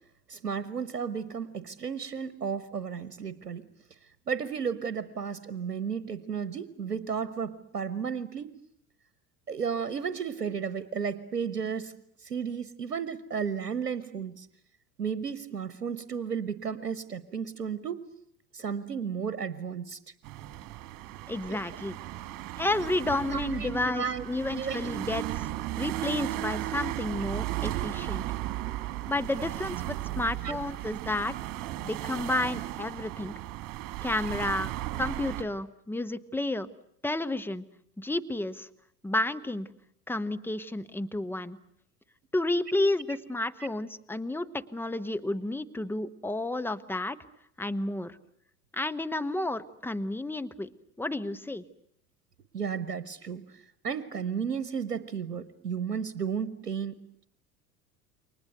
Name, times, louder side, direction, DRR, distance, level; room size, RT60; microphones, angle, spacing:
voice 1, 0.3-3.6 4.3-8.5 9.5-11.9 12.2-14.5 15.0-18.0 18.5-20.0 21.5-21.6 23.2-24.3 24.5-24.9 30.4-30.6 52.5-53.4 53.8-57.0, right 6 dB, 80° right, 15 dB, 1.1 m, -33 dB
sound 1, 20.2-35.4, right 15 dB, 45° right, 2.4 m, -35 dB
voice 2, 21.3-22.0 22.6-25.5 25.8-28.2 29.1-31.3 31.8-33.3 34.0-34.7 35.0-36.7 37.0-37.6 38.0-38.7 39.0-39.7 40.1-41.6 42.3-47.2 47.6-48.2 48.7-50.7 51.0-51.6, left 2 dB, 5° left, 12 dB, 1.1 m, -31 dB
28.5 x 24.5 x 8.0 m, 0.69 s
figure-of-eight pair, 75°, 46 cm